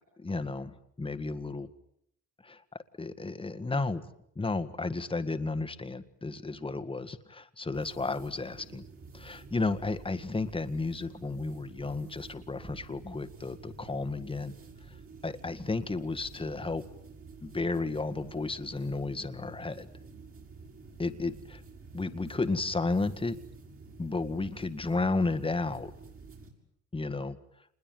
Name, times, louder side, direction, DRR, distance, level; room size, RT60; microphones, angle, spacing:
voice 1, 0.0-1.7 2.4-4.0 4.4-8.8 9.1-14.5 14.9-15.0 15.2-16.9 17.4-19.9 21.0-21.6 21.9-23.4 24.0-25.9 26.9-27.4, left 3 dB, 15° left, 10 dB, 1.8 m, -33 dB
sound 1, 7.7-26.5, right 4 dB, 45° right, 6.4 m, -50 dB
27.5 x 21.0 x 9.4 m, 0.73 s
cardioid pair, 90°, 30 cm